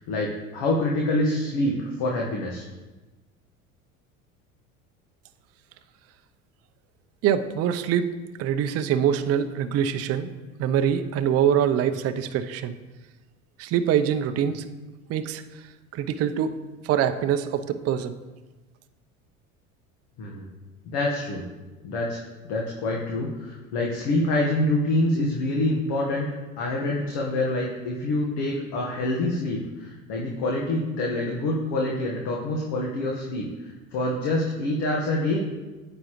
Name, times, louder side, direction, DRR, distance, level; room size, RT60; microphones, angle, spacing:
voice 1, 0.0-2.6 20.2-20.4 20.9-21.4 21.8-22.2 22.5-26.3 26.6-35.4, left 1 dB, 60° left, -2 dB, 1.3 m, -26 dB
voice 2, 7.2-8.1 8.4-10.3 10.6-12.7 13.6-14.6 15.1-15.4 15.9-16.6 16.8-18.1, right 9 dB, 35° right, 9 dB, 0.5 m, -24 dB
9.3 x 6.9 x 3.0 m, 1.2 s
hypercardioid pair, 75°, 42 cm